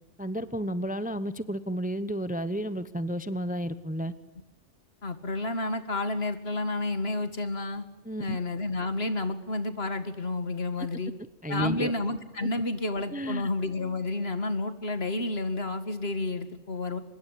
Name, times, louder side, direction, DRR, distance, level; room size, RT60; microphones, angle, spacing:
voice 1, 0.2-4.1 8.0-8.4 11.4-11.9 12.4-12.5 13.1-13.5, equal, 10° right, 14 dB, 0.8 m, -32 dB
voice 2, 5.0-7.8 8.2-11.1 11.5-17.0, left 2 dB, 55° left, 10 dB, 2.3 m, -30 dB
25.0 x 21.5 x 10.0 m, 0.90 s
omnidirectional pair, 1.2 m